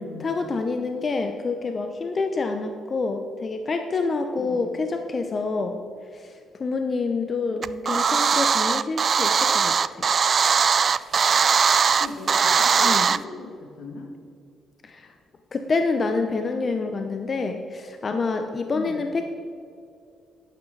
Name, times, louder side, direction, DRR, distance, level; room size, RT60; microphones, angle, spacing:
voice 1, 0.0-5.8 6.1-10.0 12.8-13.2 14.8-15.1 15.5-19.3, left 3 dB, 40° left, 6 dB, 0.7 m, -27 dB
voice 2, 4.4-4.7 7.3-8.0 12.0-14.1 18.7-19.1, left 3 dB, 80° left, 1 dB, 2.0 m, -39 dB
sound 1, 7.6-13.2, right 6 dB, 45° right, 0.3 m, -20 dB
11.0 x 9.2 x 3.9 m, 2.4 s
cardioid pair, 90°, 0 cm